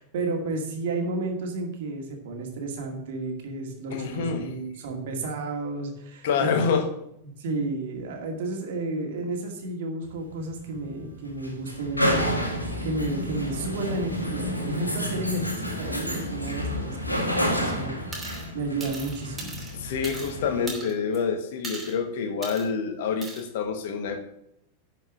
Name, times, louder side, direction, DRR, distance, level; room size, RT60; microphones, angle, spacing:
voice 1, 0.0-6.5 7.4-12.3 12.8-17.9 18.5-19.6, right 2 dB, 55° right, 2 dB, 2.2 m, -32 dB
voice 2, 3.9-4.5 6.2-6.9 19.7-24.2, left 6 dB, 55° left, 7 dB, 1.3 m, -27 dB
sound 1, 10.0-20.7, equal, 85° left, 1.6 m, -30 dB
sound 2, 18.1-18.5 18.8-20.3 20.7-21.2 21.6-22.0 22.4-22.7 23.2-23.4, right 2 dB, 15° right, 2.8 m, -38 dB
11.0 x 5.2 x 6.2 m, 0.78 s
figure-of-eight pair, 90°, 0 cm